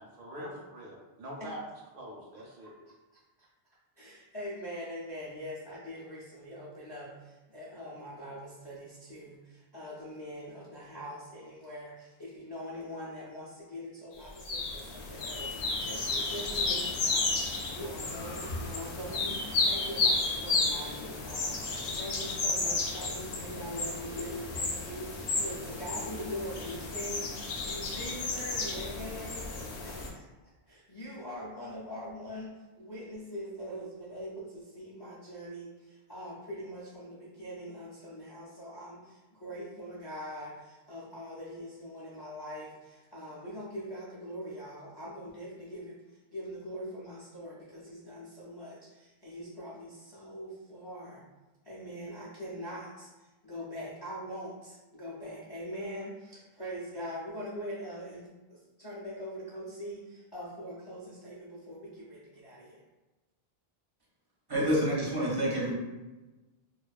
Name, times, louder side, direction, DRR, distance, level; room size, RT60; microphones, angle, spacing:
voice 1, 0.0-1.6 1.9-2.8, equal, 65° right, -2 dB, 0.7 m, -44 dB
voice 2, 2.6-3.5 4.0-30.3 30.7-51.3 51.6-62.8, equal, 40° left, -6 dB, 0.3 m, -42 dB
sound 1, 14.4-30.1, left 3 dB, 70° left, 0.7 m, -32 dB
voice 3, 64.5-65.8, equal, 30° right, -5 dB, 0.5 m, -28 dB
2.5 x 2.2 x 2.3 m, 1.1 s
omnidirectional pair, 1.0 m